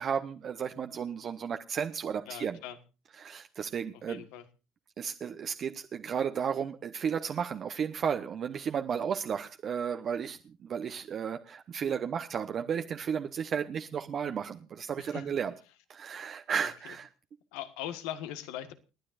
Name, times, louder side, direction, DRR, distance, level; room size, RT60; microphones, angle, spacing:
voice 1, 0.0-2.6 3.2-4.2 5.0-15.5 15.9-17.1, right 7 dB, 50° right, 6 dB, 0.9 m, -33 dB
voice 2, 2.3-2.8 3.9-4.4 11.8-11.9 15.0-15.3 16.6-16.9 17.5-18.7, left 11 dB, 80° left, 10 dB, 1.5 m, -41 dB
29.0 x 9.8 x 2.5 m, 0.32 s
hypercardioid pair, 75°, 0 cm